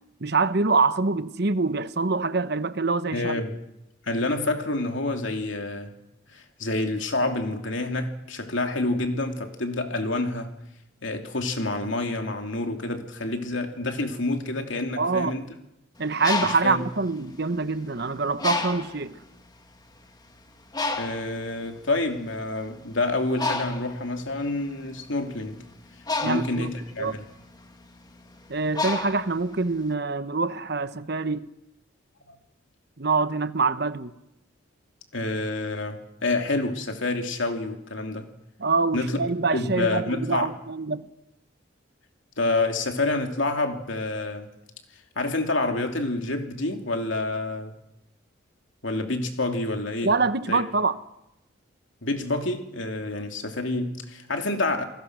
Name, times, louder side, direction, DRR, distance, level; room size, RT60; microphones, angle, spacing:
voice 1, 0.2-3.4 15.0-15.4 16.0-19.2 26.2-26.7 27.0-27.2 28.5-31.5 33.0-34.1 38.6-41.1 50.0-51.0, right 4 dB, 55° right, 1.0 m, -25 dB
voice 2, 3.1-3.6 4.0-5.9 6.3-10.5 11.0-15.4 16.4-16.8 21.0-25.6 26.2-27.2 32.3-32.4 35.1-38.3 38.9-39.2 39.5-40.5 42.4-44.5 45.1-47.7 48.8-50.1 50.5-50.6 52.0-54.8, left 2 dB, 70° left, 2.9 m, -28 dB
Bird, 16.0-17.9 18.4-19.1 19.8-19.9 20.2-29.9, left 3 dB, 20° left, 1.7 m, -31 dB
29.0 x 20.0 x 6.2 m
head